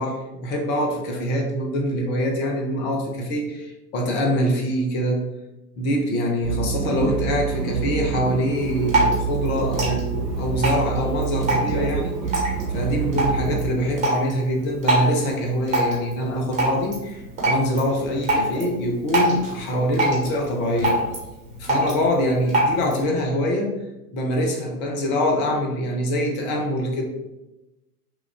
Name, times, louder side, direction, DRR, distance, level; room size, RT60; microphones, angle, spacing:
voice 1, 0.0-5.2 5.8-12.5 12.7-21.0 21.6-23.8 24.1-27.1, equal, 25° left, 2 dB, 0.8 m, -24 dB
sound 1, 6.4-13.7, right 7 dB, 90° right, 0.6 m, -27 dB
Drip, 8.5-23.0, right 1 dB, 15° right, 1.4 m, -26 dB
6.0 x 2.5 x 3.4 m, 1.0 s
figure-of-eight pair, 105°, 47 cm